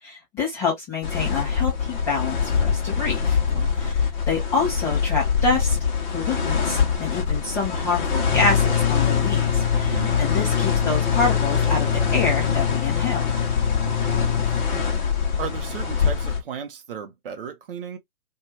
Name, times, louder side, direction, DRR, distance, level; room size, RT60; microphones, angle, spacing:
voice 1, 0.0-3.4 3.8-5.8 6.1-13.3, left 4 dB, 5° left, 0.5 m, -27 dB
sound 1, 1.0-16.4, left 6 dB, 35° left, 0.9 m, -23 dB
voice 2, 3.5-4.0 9.9-10.2 14.3-14.8 15.4-18.0, right 7 dB, 40° right, 0.7 m, -36 dB
2.5 x 2.4 x 3.0 m
figure-of-eight pair, 135°, 43 cm